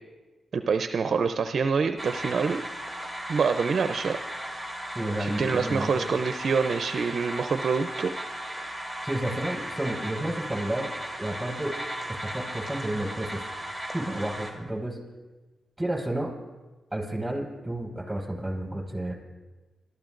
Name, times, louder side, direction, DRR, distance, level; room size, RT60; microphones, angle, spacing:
voice 1, 0.5-2.6 3.3-4.2 5.2-8.1, right 5 dB, 60° right, 8 dB, 0.5 m, -26 dB
sound 1, 2.0-14.5, right 1 dB, 5° left, 3.4 m, -36 dB
voice 2, 4.9-6.0 9.0-10.9 11.2-11.7 12.3-13.4 13.9-15.0 15.8-16.3 16.9-19.1, right 1 dB, 15° right, 0 dB, 5.2 m, -31 dB
26.5 x 13.5 x 2.6 m, 1.2 s
cardioid pair, 60°, 0 cm